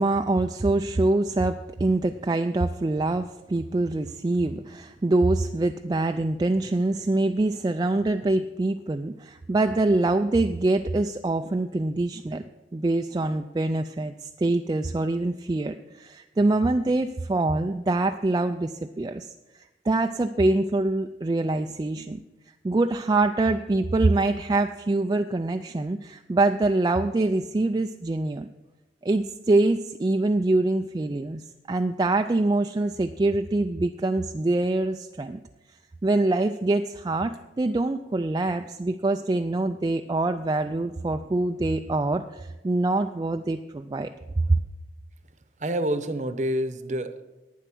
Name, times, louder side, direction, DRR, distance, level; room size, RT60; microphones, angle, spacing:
voice 1, 0.0-12.4 12.7-19.3 19.9-22.2 22.6-28.5 29.0-31.4 31.7-35.4 36.0-44.1 44.4-44.5, right 2 dB, 25° right, 7 dB, 0.3 m, -24 dB
voice 2, 45.6-47.2, right 1 dB, 40° right, 11 dB, 0.8 m, -28 dB
11.0 x 9.4 x 6.0 m, 1.0 s
head